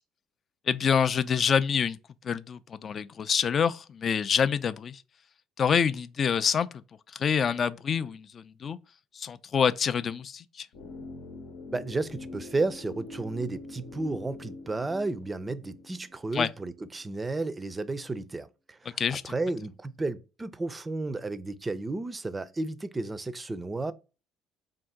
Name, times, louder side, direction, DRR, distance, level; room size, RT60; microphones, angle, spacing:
voice 1, 0.7-2.0 2.2-5.0 5.6-6.7 7.1-8.8 9.2-10.7 16.3-16.5 19.0-19.3, left 7 dB, 45° left, 0.4 m, -26 dB
sound 1, 10.7-16.8 17.0-17.1, left 2 dB, 80° left, 0.8 m, -44 dB
voice 2, 11.7-23.9, right 3 dB, 20° right, 0.5 m, -33 dB
3.7 x 2.6 x 3.4 m
supercardioid pair, 80°, 0 cm